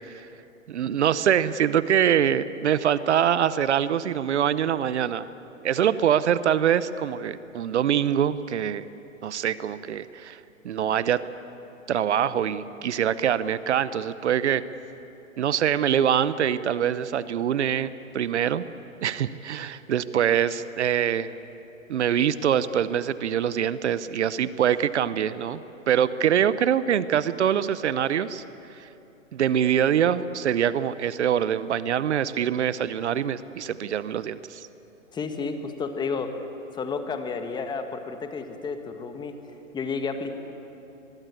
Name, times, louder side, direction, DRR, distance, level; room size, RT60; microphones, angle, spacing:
voice 1, 0.7-5.3 5.6-8.9 9.2-10.4 10.6-11.2 11.9-14.6 15.4-18.7 19.0-21.3 21.9-25.6 25.9-28.4 28.8-28.9 29.3-34.7, right 9 dB, 55° right, 16 dB, 0.9 m, -24 dB
voice 2, 35.1-36.3 36.7-39.4 39.7-40.3, left 4 dB, 10° left, 7 dB, 1.4 m, -31 dB
24.0 x 21.5 x 8.4 m, 2.9 s
figure-of-eight pair, 125°, 40 cm